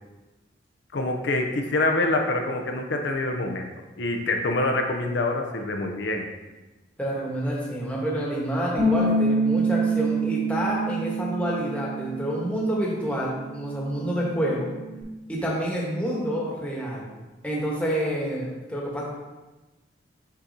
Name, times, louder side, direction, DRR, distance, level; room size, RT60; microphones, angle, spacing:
voice 1, 0.9-3.7 4.0-6.3, left 2 dB, 80° left, 3 dB, 0.6 m, -25 dB
voice 2, 7.0-14.7 15.3-17.1 17.4-19.0, equal, 5° left, -5 dB, 1.2 m, -28 dB
Bass guitar, 8.8-15.0, right 2 dB, 25° left, 1.0 m, -27 dB
6.2 x 5.8 x 2.8 m, 1.1 s
head